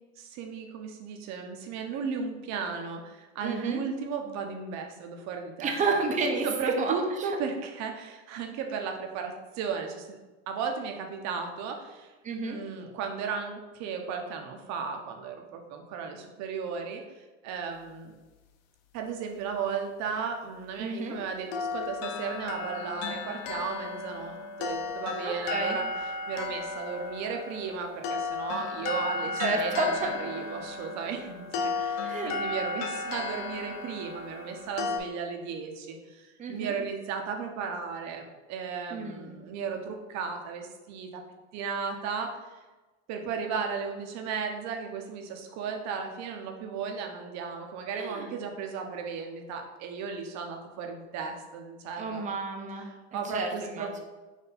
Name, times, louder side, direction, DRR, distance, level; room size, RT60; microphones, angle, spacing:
voice 1, 0.2-5.7 6.4-10.2 10.5-12.1 12.5-18.1 18.9-41.2 41.5-42.6 43.1-52.3 52.8-54.0, right 6 dB, 55° right, 4 dB, 0.8 m, -35 dB
voice 2, 3.4-3.8 5.6-6.9 7.2-7.4 12.2-12.6 20.8-21.2 25.2-25.8 29.4-30.2 32.0-32.4 36.4-36.8 38.9-39.4 47.9-48.3 52.0-52.9 53.2-53.9, right 3 dB, 20° right, 2 dB, 0.7 m, -31 dB
sound 1, 21.5-35.0, left 4 dB, 55° left, 0.5 m, -34 dB
4.4 x 2.6 x 4.0 m, 1.2 s
supercardioid pair, 100°, 33 cm